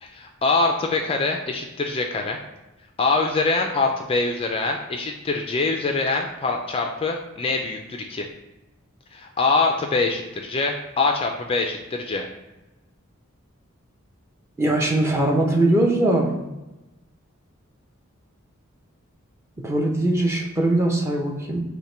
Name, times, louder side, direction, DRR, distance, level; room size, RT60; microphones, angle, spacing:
voice 1, 0.0-2.4 3.0-8.3 9.1-12.3, left 3 dB, 25° left, 3 dB, 0.3 m, -24 dB
voice 2, 14.6-16.3 19.6-21.6, right 1 dB, 15° right, 0 dB, 0.7 m, -21 dB
5.6 x 2.2 x 4.3 m, 1.0 s
head